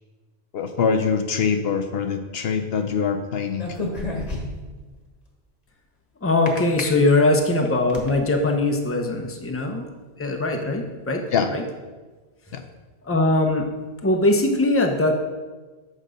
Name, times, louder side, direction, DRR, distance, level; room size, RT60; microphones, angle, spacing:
voice 1, 0.5-3.7 11.3-11.5 12.5-12.6, left 6 dB, 70° left, 6 dB, 0.8 m, -23 dB
sound 1, 3.5-4.8 6.5-6.8 7.4-8.1, left 2 dB, 40° left, 1.3 m, -30 dB
voice 2, 6.2-9.9 10.2-11.2 11.5-11.6 13.0-13.7 14.0-15.2, left 2 dB, 15° left, 3 dB, 0.7 m, -21 dB
6.5 x 6.5 x 5.1 m, 1.3 s
omnidirectional pair, 1.1 m